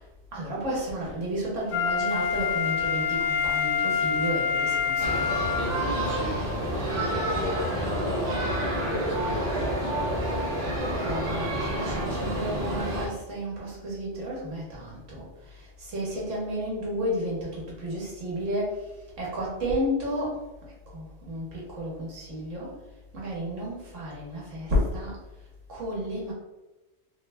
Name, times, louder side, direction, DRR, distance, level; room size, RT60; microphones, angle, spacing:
voice 1, 0.3-5.3 11.0-15.2 15.6-18.8 19.2-20.4 20.9-22.7 23.1-25.1 25.7-26.3, equal, 85° right, -5 dB, 1.4 m, -32 dB
Wind instrument woodwind instrument, 1.7-6.0 6.5-6.6, left 7 dB, 85° left, 1.0 m, -26 dB
sound 1, 5.0-13.1, right 1 dB, 60° right, 1.0 m, -29 dB
voice 2, 5.6-10.2, left 2 dB, 55° left, -3 dB, 0.6 m, -36 dB
3.2 x 2.3 x 3.2 m, 1.0 s
omnidirectional pair, 1.2 m